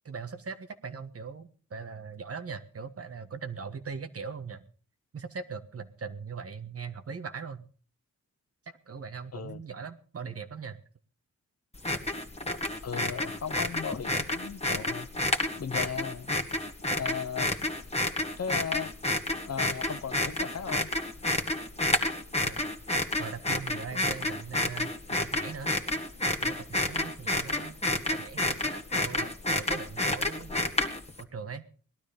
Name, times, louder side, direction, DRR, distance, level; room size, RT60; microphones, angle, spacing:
voice 1, 0.0-4.7 5.1-7.6 8.6-10.8 22.4-22.7 23.2-25.7 26.4-30.5 31.2-31.7, right 5 dB, 50° right, 10 dB, 1.5 m, -40 dB
sound 1, 11.8-31.2, left 1 dB, 20° left, 1.8 m, -30 dB
voice 2, 12.8-15.1 15.6-16.3 17.0-17.5 18.4-18.9 19.5-20.9, left 7 dB, 55° left, 11 dB, 1.1 m, -36 dB
19.0 x 12.5 x 5.3 m, 0.42 s
wide cardioid pair, 100°, 30 cm